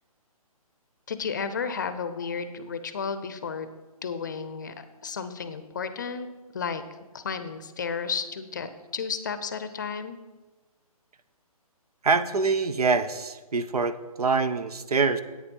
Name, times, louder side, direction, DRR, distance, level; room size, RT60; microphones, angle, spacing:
voice 1, 1.1-3.7 4.0-6.3 6.5-6.8 7.1-10.2, left 6 dB, 30° left, 11 dB, 0.6 m, -33 dB
voice 2, 12.0-15.2, right 4 dB, 85° right, 12 dB, 0.9 m, -25 dB
9.9 x 8.8 x 5.3 m, 1.2 s
hypercardioid pair, 170°, 19 cm